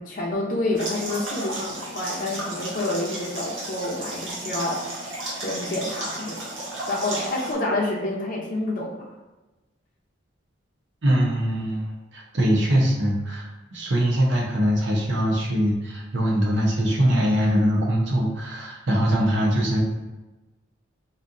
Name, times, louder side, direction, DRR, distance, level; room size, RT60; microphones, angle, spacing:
voice 1, 0.0-5.1 5.4-6.4 6.9-9.1, left 2 dB, 45° left, -4 dB, 0.6 m, -28 dB
sound 1, 0.8-7.5, right 1 dB, 85° right, 1.1 m, -33 dB
voice 2, 11.0-19.8, equal, 65° right, -2 dB, 0.8 m, -22 dB
4.1 x 2.6 x 2.5 m, 1.1 s
head